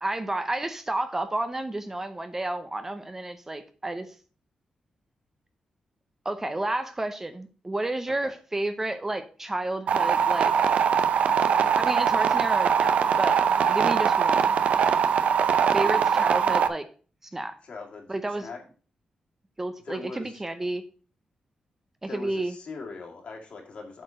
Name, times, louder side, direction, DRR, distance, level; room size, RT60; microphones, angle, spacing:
voice 1, 0.0-4.1 6.2-10.5 11.8-13.4 13.7-14.6 15.7-16.8 17.3-17.5 18.1-18.5 19.6-20.8 22.0-22.5, right 2 dB, 15° right, 9 dB, 0.7 m, -31 dB
sound 1, 9.9-16.7, right 7 dB, 70° right, 0.5 m, -22 dB
voice 2, 15.8-16.2 17.6-18.1 18.4-18.6 19.8-20.4 22.1-24.0, left 4 dB, 60° left, 1 dB, 2.3 m, -40 dB
7.9 x 4.4 x 6.3 m, 0.39 s
wide cardioid pair, 130°, 2 cm